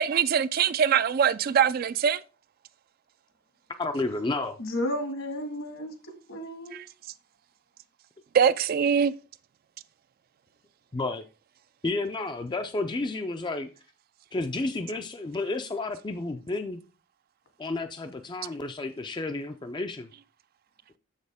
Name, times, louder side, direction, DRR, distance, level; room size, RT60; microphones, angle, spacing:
voice 1, 0.0-2.2 6.7-6.8 8.3-9.1, right 7 dB, 45° right, 0.3 m, -23 dB
voice 2, 3.8-4.6 10.9-11.2 11.8-13.7 14.3-16.8 17.6-20.1, left 2 dB, 20° left, 0.4 m, -31 dB
voice 3, 4.6-6.8, left 1 dB, 70° left, 1.7 m, -33 dB
7.1 x 6.5 x 3.4 m
head